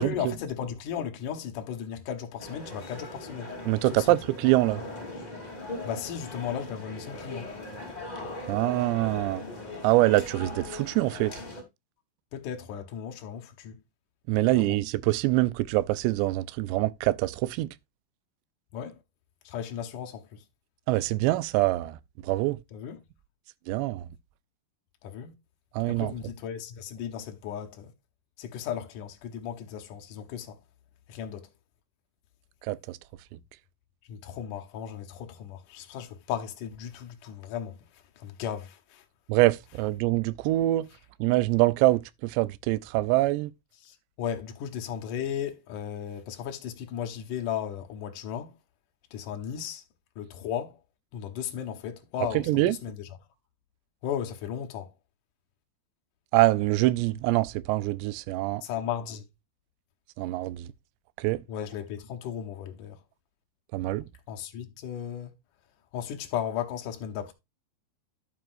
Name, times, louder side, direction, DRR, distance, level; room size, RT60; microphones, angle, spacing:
voice 1, 0.0-3.5 3.8-4.1 5.8-7.5 12.3-13.8 14.5-14.8 18.7-19.0 19.4-20.4 22.7-23.0 25.0-25.3 25.8-27.9 28.4-30.6 31.1-31.5 34.1-37.8 38.2-39.0 43.8-48.5 49.1-49.8 50.2-50.8 51.1-53.2 54.0-54.9 58.6-59.2 61.5-63.0 64.3-65.3 65.9-67.3, left 9 dB, 65° left, 2.1 m, -35 dB
sound 1, 2.4-11.6, left 2 dB, 10° left, 2.4 m, -40 dB
voice 2, 3.7-4.8 8.5-9.4 9.8-11.3 14.3-17.7 20.9-22.0 22.3-22.6 23.7-24.0 25.8-26.1 32.7-32.8 39.3-40.9 41.2-43.5 52.5-52.8 56.3-58.6 60.2-60.7 61.2-61.4 63.7-64.1, right 18 dB, 80° right, 2.7 m, -24 dB
11.0 x 7.7 x 2.6 m
omnidirectional pair, 5.4 m